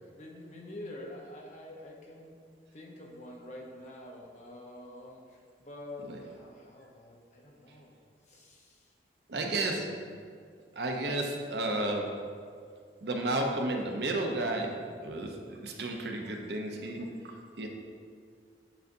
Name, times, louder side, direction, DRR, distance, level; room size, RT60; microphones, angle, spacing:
voice 1, 0.0-2.4 2.7-7.9 8.3-8.9 9.3-10.2, left 1 dB, 40° left, -1 dB, 0.8 m, -47 dB
voice 2, 9.3-9.9 10.7-12.1 13.0-14.7 15.0-17.7, right 2 dB, 75° right, 2 dB, 0.7 m, -32 dB
9.0 x 3.9 x 2.6 m, 2.1 s
head